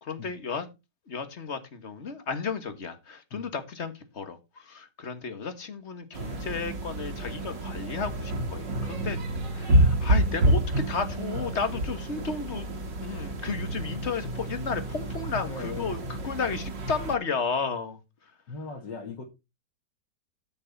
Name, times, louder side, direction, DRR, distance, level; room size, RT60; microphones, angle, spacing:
voice 1, 0.0-0.7 1.1-9.2 9.5-12.7 13.0-18.0, left 5 dB, 40° left, 1.8 m, -33 dB
sound 1, 6.1-17.2, right 1 dB, 90° right, 2.9 m, -28 dB
voice 2, 15.4-16.0 18.5-19.2, left 4 dB, 90° left, 2.5 m, -39 dB
13.0 x 6.9 x 4.1 m
omnidirectional pair, 1.9 m